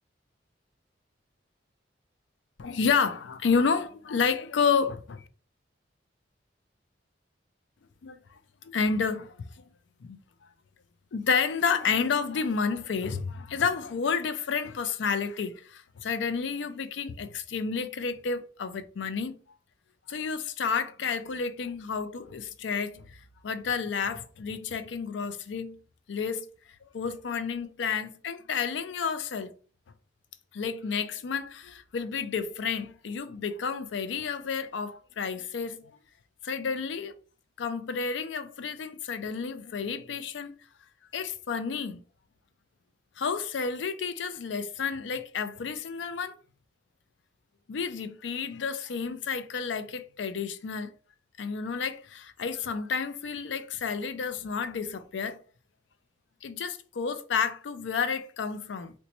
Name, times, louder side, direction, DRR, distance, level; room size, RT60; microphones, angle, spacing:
voice 1, 2.6-5.2 8.0-8.2 8.6-9.7 10.0-10.2 11.1-19.4 20.1-25.8 26.1-26.5 26.9-29.5 30.5-35.9 36.4-37.1 37.6-40.5 41.1-42.0 43.2-46.3 47.7-50.9 51.4-55.4 56.4-58.9, left 5 dB, 75° left, 0.4 m, -30 dB
2.9 x 2.2 x 3.9 m
head